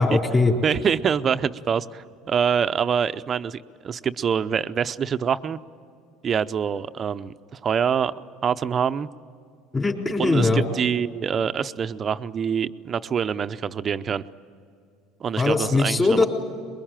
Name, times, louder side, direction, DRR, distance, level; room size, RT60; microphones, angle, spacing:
voice 1, 0.0-0.5 9.7-10.6 15.4-16.3, left 3 dB, 20° left, 0 dB, 3.8 m, -20 dB
voice 2, 0.6-5.6 6.2-8.1 8.4-9.1 10.2-14.2 15.2-16.2, right 7 dB, 35° right, 12 dB, 0.7 m, -25 dB
23.0 x 22.0 x 9.0 m, 2.4 s
supercardioid pair, 105°, 0 cm